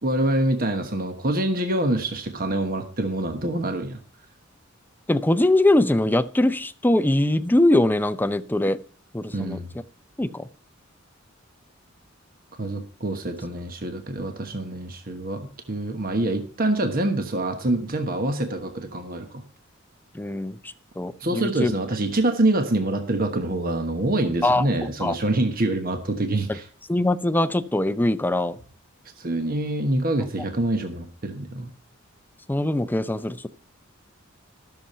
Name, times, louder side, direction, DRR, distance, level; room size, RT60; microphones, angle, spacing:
voice 1, 0.0-4.0 9.3-9.7 12.6-19.4 21.2-26.7 29.2-31.7, right 1 dB, 45° right, 6 dB, 1.3 m, -25 dB
voice 2, 5.1-8.8 9.1-9.6 10.2-10.5 20.1-20.6 21.0-21.7 24.4-24.7 25.0-25.1 26.9-28.6 32.5-33.5, left 1 dB, 10° left, 13 dB, 0.6 m, -22 dB
14.0 x 6.8 x 5.6 m, 0.42 s
head